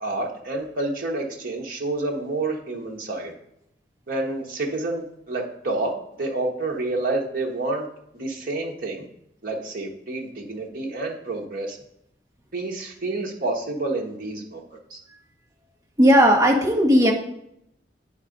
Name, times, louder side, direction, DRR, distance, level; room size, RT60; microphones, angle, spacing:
voice 1, 0.0-3.3 4.1-5.9 6.2-7.9 8.1-9.0 9.4-11.8 12.5-14.6 14.9-15.0, right 2 dB, 50° right, -1 dB, 1.2 m, -28 dB
voice 2, 16.0-17.1, equal, 20° right, -1 dB, 1.3 m, -16 dB
8.4 x 3.7 x 5.1 m, 0.74 s
head